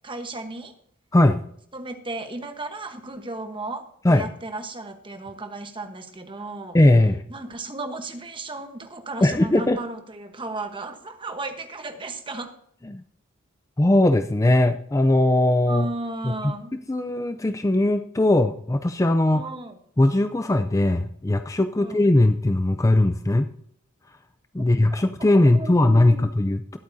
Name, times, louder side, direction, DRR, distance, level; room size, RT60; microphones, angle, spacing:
voice 1, 0.0-0.7 1.7-6.8 7.3-12.5 15.7-16.7 19.3-19.8 21.8-22.0 24.6-26.3, right 2 dB, 25° right, 1.1 m, -35 dB
voice 2, 6.7-7.2 9.2-9.8 12.9-13.0 13.8-15.9 16.2-16.5 16.9-19.5 20.0-23.5 24.5-26.8, left 1 dB, 15° left, 0.4 m, -19 dB
21.0 x 8.5 x 2.7 m
head